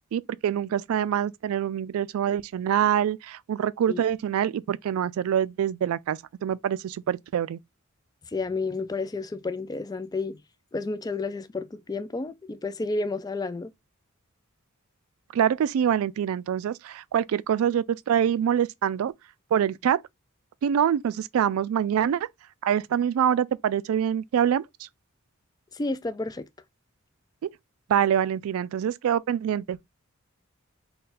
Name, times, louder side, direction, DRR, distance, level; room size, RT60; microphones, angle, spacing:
voice 1, 0.1-7.6 15.3-19.1 19.5-20.0 20.6-22.3 22.6-24.6 27.9-29.8, right 9 dB, 75° right, 0.3 m, -25 dB
voice 2, 8.3-10.4 10.7-13.7 25.7-26.5, left 3 dB, 20° left, 0.3 m, -31 dB
3.9 x 2.2 x 4.1 m
head